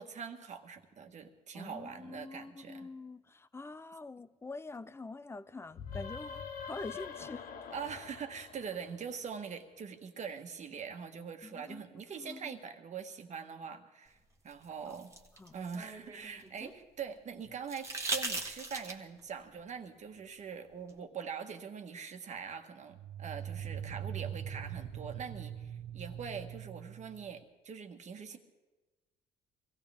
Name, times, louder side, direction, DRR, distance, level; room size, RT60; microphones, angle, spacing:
voice 1, 0.0-2.9 7.7-14.2 14.4-15.1 15.5-28.4, right 6 dB, 45° right, 1.5 m, -43 dB
voice 2, 1.5-7.5 11.4-11.8 12.2-12.6 14.9-15.0 15.4-15.5, left 3 dB, 15° left, 0.4 m, -45 dB
sound 1, 5.7-9.3, left 6 dB, 60° left, 1.1 m, -45 dB
sound 2, 14.5-16.8 17.7-19.2 20.9-21.0, right 3 dB, 15° right, 1.6 m, -39 dB
sound 3, 17.5-17.6 22.9-27.4, right 9 dB, 75° right, 0.9 m, -42 dB
24.0 x 16.0 x 3.5 m
cardioid pair, 110°, 17 cm